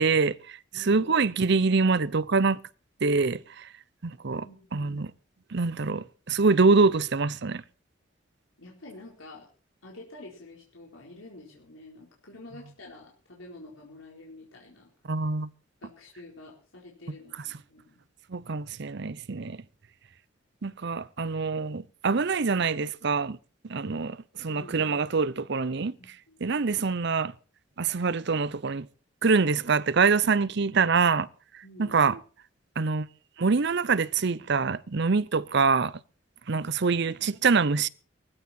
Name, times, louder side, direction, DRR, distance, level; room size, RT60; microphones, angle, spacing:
voice 1, 0.0-2.6 3.0-3.7 4.0-4.5 4.7-5.1 5.5-7.6 15.0-15.5 18.3-19.6 20.6-23.4 23.7-25.9 26.4-27.3 27.8-28.9 29.2-31.3 31.8-32.2 32.8-33.1 33.4-35.9 36.5-37.9, right 4 dB, 60° right, 0.7 m, -25 dB
voice 2, 0.7-1.1 4.4-5.0 8.6-9.4 9.8-14.9 15.8-18.0 24.5-24.7 26.0-26.4 31.6-32.0, left 2 dB, 85° left, 4.2 m, -48 dB
18.0 x 15.5 x 4.4 m
head